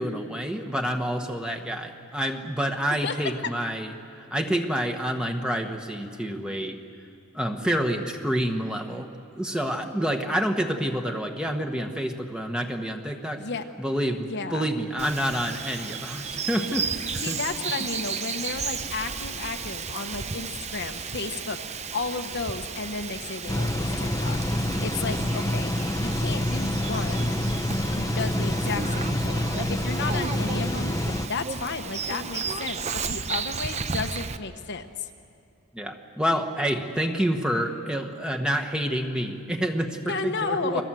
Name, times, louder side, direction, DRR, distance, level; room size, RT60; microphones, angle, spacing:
voice 1, 0.0-6.8 7.3-9.1 9.3-13.4 13.8-17.4 35.7-40.8, equal, 5° right, 3 dB, 1.4 m, -28 dB
voice 2, 3.0-3.3 13.3-13.6 14.3-14.7 17.2-25.7 26.0-27.3 27.8-30.9 31.3-35.1 40.1-40.8, left 4 dB, 50° left, 6 dB, 1.2 m, -33 dB
Bird vocalization bird call bird song, 15.0-34.4, right 5 dB, 30° right, 0.7 m, -34 dB
sound 1, 23.5-31.3, left 1 dB, 15° left, 0.8 m, -27 dB
29.5 x 22.5 x 7.7 m, 2.4 s
head